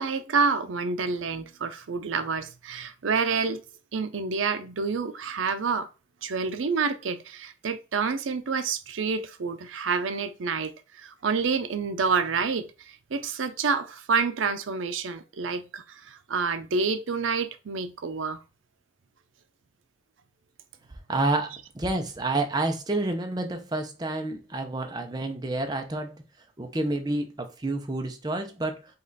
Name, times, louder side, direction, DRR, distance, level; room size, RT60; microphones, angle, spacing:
voice 1, 0.0-3.6 3.9-5.9 6.2-18.4, right 5 dB, 85° right, 0.5 m, -28 dB
voice 2, 21.1-26.1 26.6-28.8, right 2 dB, 20° right, 0.6 m, -29 dB
5.3 x 2.4 x 3.9 m
head